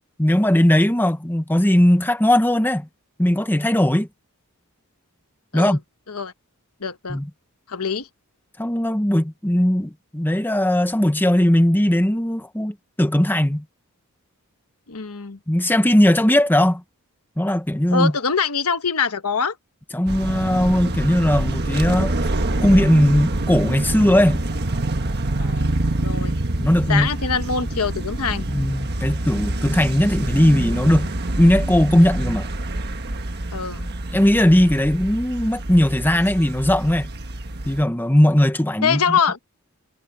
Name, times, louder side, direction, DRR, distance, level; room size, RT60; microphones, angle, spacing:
voice 1, 0.2-2.9 3.2-4.1 5.5-5.8 7.1-7.3 8.6-13.6 15.5-16.8 17.4-18.1 19.9-22.1 22.6-24.4 26.6-27.1 28.5-31.1 31.4-32.5 34.1-37.1 37.7-39.2, left 1 dB, 10° left, 1.0 m, -18 dB
voice 2, 6.8-7.2 7.7-8.1 14.9-15.4 17.9-19.6 25.4-26.4 26.9-28.5 33.5-33.9 38.8-39.4, left 6 dB, 75° left, 1.2 m, -24 dB
sound 1, 20.1-37.8, right 1 dB, 50° right, 1.5 m, -26 dB
head